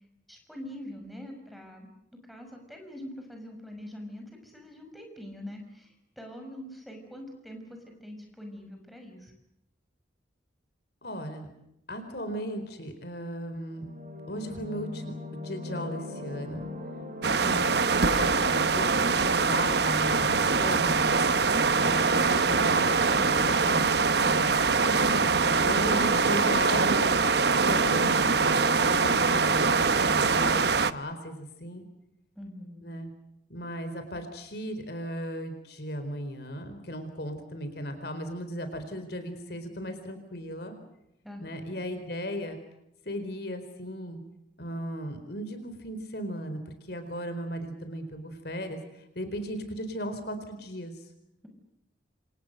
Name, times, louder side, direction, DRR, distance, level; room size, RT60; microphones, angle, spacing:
voice 1, 0.3-1.9 2.3-7.6 8.0-9.3 17.2-17.7 24.9-25.5 32.4-32.9 41.2-41.8, equal, ahead, 3 dB, 6.1 m, -43 dB
voice 2, 11.0-11.5 11.9-13.9 14.3-16.7 17.2-21.2 21.8-24.1 25.6-27.3 27.6-30.7 30.9-31.8 32.8-33.1 33.5-40.8 41.4-42.6 43.1-44.2 44.6-46.6 46.9-51.0, equal, 55° left, 8 dB, 4.3 m, -36 dB
sound 1, 13.7-31.1, left 2 dB, 40° right, 4.6 m, -39 dB
sound 2, 17.2-30.9, right 4 dB, 60° right, 1.0 m, -23 dB
28.0 x 28.0 x 6.7 m, 0.81 s
head